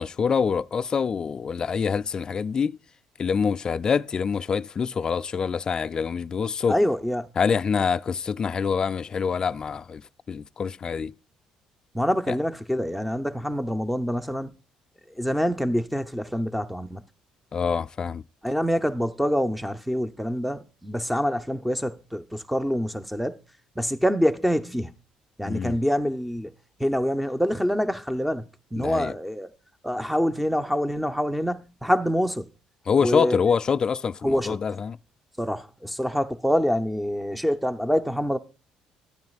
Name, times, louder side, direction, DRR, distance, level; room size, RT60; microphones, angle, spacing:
voice 1, 0.0-2.8 3.2-6.8 7.4-10.0 10.3-11.1 12.3-12.4 17.5-18.2 25.4-25.8 28.8-29.1 32.9-35.0, left 6 dB, 35° left, 0.3 m, -25 dB
voice 2, 6.7-7.3 11.9-14.5 15.1-17.0 18.4-23.4 23.8-24.9 25.4-26.5 26.8-29.5 29.8-32.5 33.0-33.4 34.2-34.6 35.4-38.4, equal, ahead, 0.7 m, -26 dB
12.5 x 9.3 x 2.4 m
cardioid pair, 100°, 2 cm